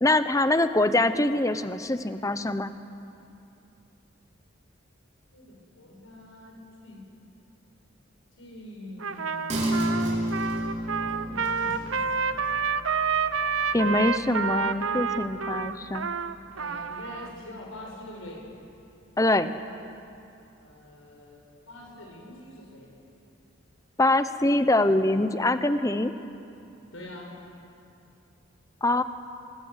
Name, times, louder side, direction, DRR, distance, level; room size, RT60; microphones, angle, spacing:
voice 1, 0.0-2.7 13.7-16.1 19.2-19.5 24.0-26.1 28.8-29.0, left 2 dB, 15° left, 11 dB, 0.8 m, -24 dB
voice 2, 5.3-7.0 8.3-10.3 11.0-12.7 16.5-18.4 20.6-22.9 26.9-27.3, left 1 dB, 85° left, -1 dB, 6.6 m, -45 dB
Trumpet, 9.0-17.3, right 5 dB, 85° right, 0.9 m, -29 dB
sound 1, 9.5-16.5 16.9-17.0, right 1 dB, 35° right, 4.4 m, -33 dB
24.5 x 21.0 x 8.2 m, 2.7 s
head